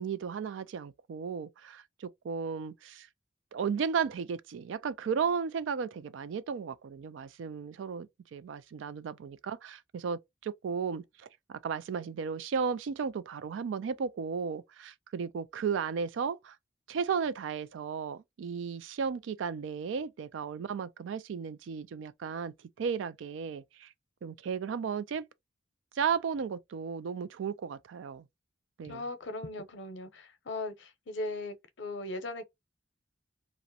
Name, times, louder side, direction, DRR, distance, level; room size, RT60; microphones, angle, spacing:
voice 1, 0.0-3.1 3.5-16.6 16.9-23.9 24.2-25.2 26.0-28.3 28.8-29.0, right 6 dB, 90° right, 0.3 m, -34 dB
voice 2, 28.8-32.4, left 2 dB, 75° left, 0.6 m, -38 dB
2.4 x 2.1 x 2.6 m
head